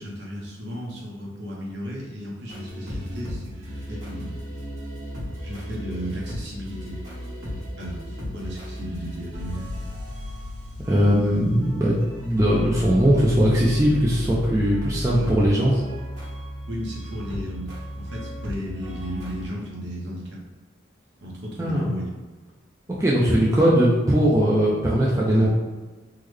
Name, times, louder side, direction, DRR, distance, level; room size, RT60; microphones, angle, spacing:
voice 1, 0.0-4.4 5.4-7.0 7.8-9.7 15.1-15.8 16.7-20.4 21.2-22.1 25.3-25.5, equal, 60° right, -3 dB, 0.8 m, -35 dB
sound 1, 2.5-19.5, left 1 dB, 75° right, 1.3 m, -34 dB
voice 2, 10.8-15.7 21.6-21.9 23.0-25.5, equal, 15° right, -6 dB, 0.3 m, -20 dB
3.6 x 2.1 x 3.2 m, 1.3 s
head